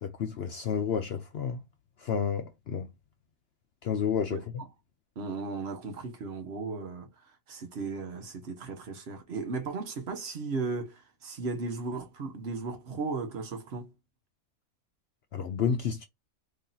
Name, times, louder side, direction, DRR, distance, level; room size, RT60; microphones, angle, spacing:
voice 1, 0.0-1.6 2.0-2.9 3.8-4.4 15.3-16.0, left 7 dB, 65° left, 0.6 m, -30 dB
voice 2, 5.2-7.1 7.5-13.9, right 4 dB, 50° right, 1.1 m, -36 dB
3.1 x 2.8 x 3.8 m
omnidirectional pair, 1.5 m